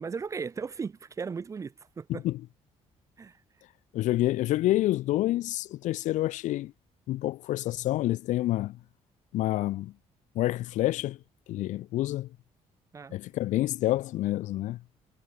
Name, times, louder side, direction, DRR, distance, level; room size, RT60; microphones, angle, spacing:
voice 1, 0.0-2.2 3.2-3.4 12.9-13.2, right 5 dB, 25° right, 1.7 m, -36 dB
voice 2, 2.1-2.4 3.9-6.7 7.1-8.8 9.3-9.9 10.3-11.2 11.5-12.3 13.1-14.8, left 15 dB, 80° left, 0.9 m, -28 dB
cardioid pair, 165°, 13 cm